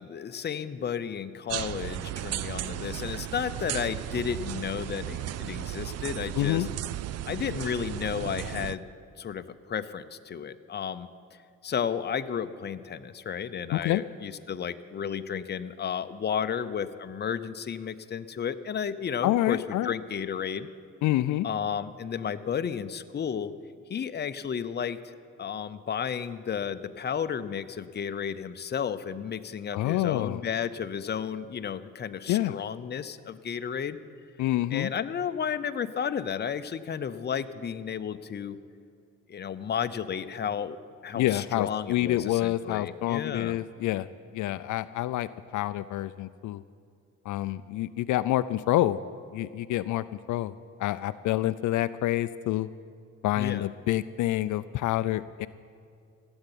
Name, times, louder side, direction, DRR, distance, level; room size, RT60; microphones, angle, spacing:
voice 1, 0.0-6.7 7.3-8.8 9.2-11.1 11.6-20.7 21.4-23.5 23.9-25.0 25.4-34.0 34.7-38.6 39.3-40.8 41.0-43.6 53.4-53.7, left 7 dB, 35° left, 10 dB, 0.7 m, -33 dB
sound 1, 1.5-8.8, right 12 dB, 60° right, 0.5 m, -35 dB
voice 2, 6.3-6.7 13.7-14.0 19.2-19.9 21.0-21.5 29.7-30.4 32.3-32.5 34.4-34.9 41.1-44.1 44.3-46.6 47.3-49.0 49.3-50.5 50.8-52.7 53.2-55.5, left 15 dB, 75° left, 13 dB, 0.5 m, -27 dB
16.0 x 8.0 x 9.9 m, 2.3 s
cardioid pair, 90°, 30 cm